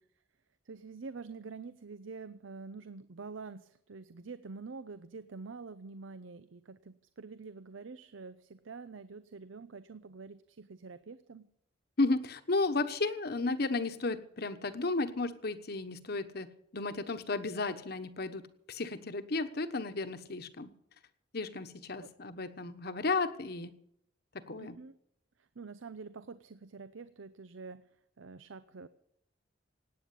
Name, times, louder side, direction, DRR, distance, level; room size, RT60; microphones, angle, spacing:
voice 1, 0.6-11.5 22.0-22.1 24.6-24.9 25.4-27.9 28.2-28.9, right 4 dB, 90° right, 13 dB, 0.7 m, -46 dB
voice 2, 12.0-16.5 16.7-18.4 18.7-20.7 21.3-23.7 24.5-24.8, left 3 dB, 55° left, 9 dB, 1.2 m, -33 dB
17.5 x 9.3 x 8.4 m, 0.74 s
head